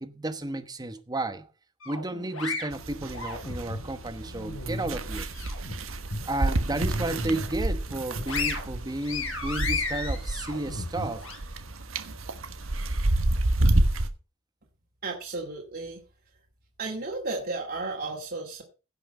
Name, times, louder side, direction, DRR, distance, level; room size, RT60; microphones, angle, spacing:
voice 1, 0.0-1.5 1.8-5.3 6.2-11.3, right 2 dB, 20° right, 1.0 m, -32 dB
sound 1, 1.8-3.8 4.3-5.7 6.1-6.3 6.7-7.5 7.9-11.4, left 3 dB, 80° left, 4.7 m, -34 dB
sound 2, 2.7-14.1, right 1 dB, 85° right, 1.3 m, -29 dB
voice 2, 15.0-16.0 16.8-18.6, right 3 dB, 50° right, 2.2 m, -33 dB
16.5 x 5.9 x 5.4 m
head